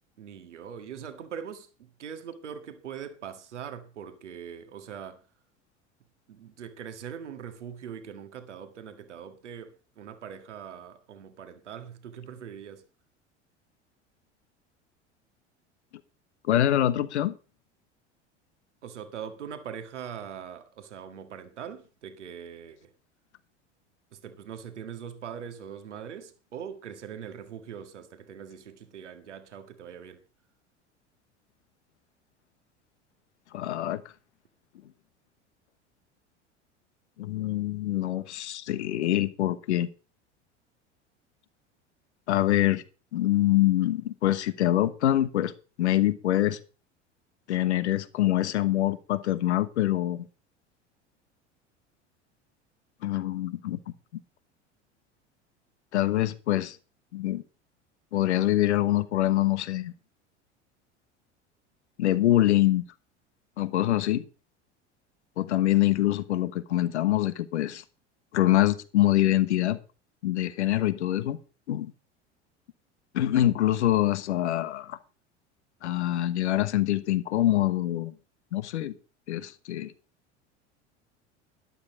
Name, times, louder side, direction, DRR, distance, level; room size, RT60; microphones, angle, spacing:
voice 1, 0.2-5.3 6.3-12.9 18.8-22.9 24.1-30.2, right 8 dB, 75° right, 1.8 m, -42 dB
voice 2, 16.5-17.4 33.5-34.0 37.2-39.9 42.3-42.8 43.1-45.5 45.8-46.6 47.5-50.2 53.0-53.8 55.9-56.8 57.1-57.4 58.1-59.9 62.0-62.8 63.6-64.2 65.4-67.8 68.3-69.8 70.2-71.4 71.7-71.9 73.1-75.0 75.8-78.1 78.5-79.0 79.3-79.9, left 14 dB, 70° left, 1.2 m, -25 dB
12.5 x 12.0 x 3.9 m
figure-of-eight pair, 75°, 36 cm